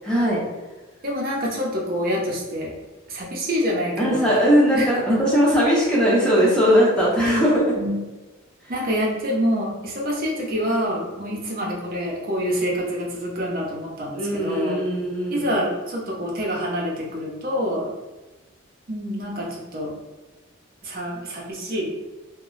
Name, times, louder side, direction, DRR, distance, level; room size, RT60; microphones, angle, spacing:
voice 1, 0.0-0.4 4.0-7.8 14.2-15.4, equal, 5° left, -6 dB, 0.6 m, -19 dB
voice 2, 1.0-2.7 3.1-4.3 4.7-4.9 7.7-8.0 8.7-14.8 15.3-17.9 18.9-19.9 20.8-21.9, equal, 45° right, -3 dB, 0.7 m, -26 dB
2.2 x 2.0 x 3.8 m, 1.2 s
head